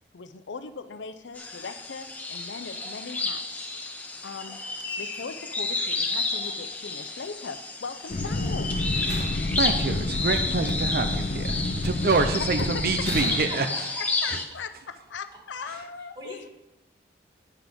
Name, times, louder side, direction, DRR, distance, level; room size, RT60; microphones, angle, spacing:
voice 1, 0.1-3.6 4.2-4.6 5.0-8.7 12.4-13.3 14.2-16.5, left 5 dB, 85° left, 10 dB, 0.6 m, -39 dB
sound 1, 1.3-14.4, left 3 dB, 10° left, 0.8 m, -31 dB
sound 2, 8.1-13.4, left 2 dB, 45° left, 0.5 m, -29 dB
Slam, 8.7-9.7 11.2-11.6 13.0-14.0, right 1 dB, 90° right, 2.3 m, -39 dB
voice 2, 9.5-13.7 14.3-14.4, right 3 dB, 55° right, 8 dB, 0.5 m, -26 dB
voice 3, 13.5-14.3 16.2-16.5, right 1 dB, 25° right, -1 dB, 1.9 m, -41 dB
9.6 x 6.0 x 5.1 m, 0.98 s
head